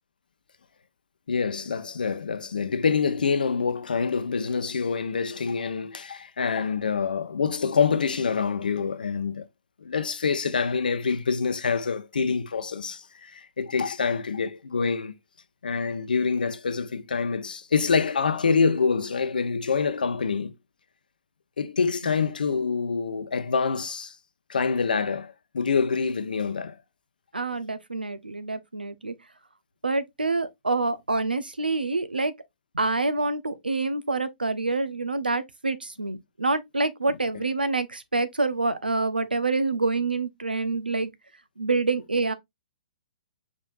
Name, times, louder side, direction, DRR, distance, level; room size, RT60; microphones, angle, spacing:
voice 1, 1.3-9.5 9.8-15.1 15.6-20.5 21.6-24.2 24.5-26.8, left 5 dB, 70° left, 0.6 m, -26 dB
voice 2, 27.3-29.1 29.8-32.3 32.7-41.1 41.6-42.3, right 3 dB, 85° right, 0.6 m, -27 dB
5.1 x 3.7 x 2.4 m
figure-of-eight pair, 120°, 5 cm